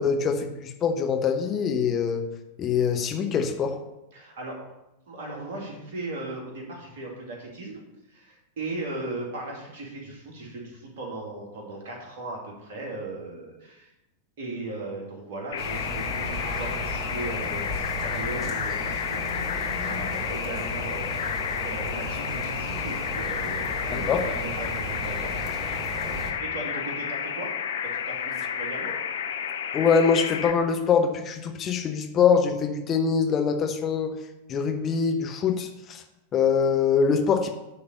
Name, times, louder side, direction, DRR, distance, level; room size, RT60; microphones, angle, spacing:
voice 1, 0.0-2.2 2.6-3.8 23.9-24.3 29.7-34.2 34.5-36.0 36.3-37.5, left 6 dB, 30° left, 4 dB, 0.9 m, -24 dB
voice 2, 4.1-4.6 5.1-7.8 8.1-13.9 14.4-25.5 26.4-27.5 27.8-29.0, right 2 dB, 55° right, -1 dB, 2.4 m, -37 dB
sound 1, 15.5-30.5, left 8 dB, 60° left, 0.6 m, -31 dB
sound 2, 15.6-26.3, equal, 20° right, 2.9 m, -34 dB
9.7 x 3.9 x 6.6 m, 0.94 s
figure-of-eight pair, 90°, 0 cm